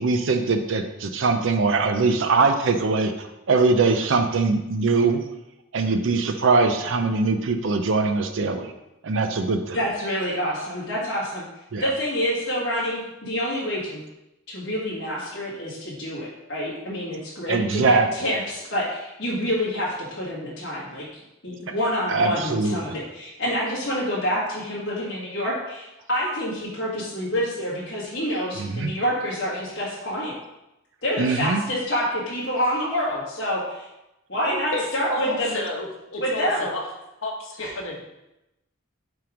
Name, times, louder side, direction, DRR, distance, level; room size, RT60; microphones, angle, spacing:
voice 1, 0.0-5.2 5.7-8.7 9.0-9.8 11.7-11.8 17.5-18.1 22.1-22.8 28.6-28.9 31.2-31.6, right 4 dB, 65° right, 6 dB, 0.5 m, -22 dB
voice 2, 9.7-11.4 11.8-14.0 14.5-21.0 21.4-30.3 31.0-33.8 34.3-35.6 36.2-36.6 37.6-37.7, equal, 55° left, -8 dB, 1.7 m, -27 dB
voice 3, 35.1-36.8 37.2-38.0, left 1 dB, 80° left, 0 dB, 1.2 m, -30 dB
5.8 x 3.7 x 4.9 m, 0.92 s
head